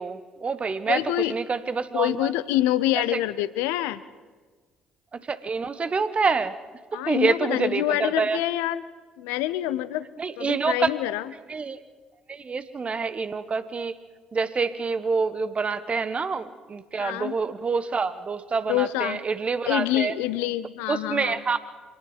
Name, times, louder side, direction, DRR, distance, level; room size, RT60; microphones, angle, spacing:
voice 1, 0.0-1.0 1.3-2.3 3.1-3.2 5.1-6.5 6.9-8.4 10.2-10.9 11.5-11.8 12.3-14.0 14.3-20.1 20.9-21.6, right 4 dB, 35° right, 13 dB, 1.3 m, -27 dB
voice 2, 0.9-1.4 1.9-4.0 6.9-8.8 9.2-10.1 10.4-11.3 17.0-17.3 18.7-19.2 19.6-21.4, left 14 dB, 70° left, 17 dB, 0.7 m, -26 dB
25.5 x 18.5 x 5.5 m, 1.4 s
figure-of-eight pair, 45°, 4 cm